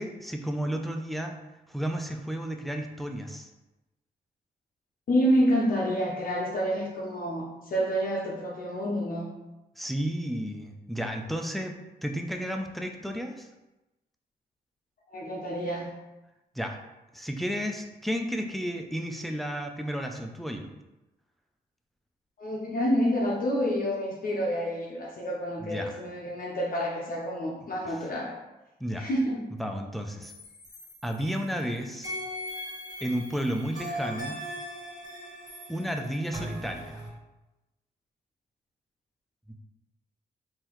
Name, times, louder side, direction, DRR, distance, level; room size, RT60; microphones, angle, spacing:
voice 1, 0.0-1.4 1.7-3.5 9.8-13.5 16.5-16.8 17.1-20.7 25.6-26.0 28.8-29.1 29.6-30.3 31.0-32.1 33.0-34.4 35.7-37.0, equal, ahead, 3 dB, 0.4 m, -32 dB
voice 2, 5.1-9.3 15.1-15.9 22.4-28.4 29.0-29.5, equal, 55° left, -3 dB, 0.7 m, -28 dB
sound 1, 30.2-31.6 32.0-37.1, equal, 20° right, 1.4 m, -39 dB
3.8 x 2.7 x 3.0 m, 1.0 s
cardioid pair, 75°, 17 cm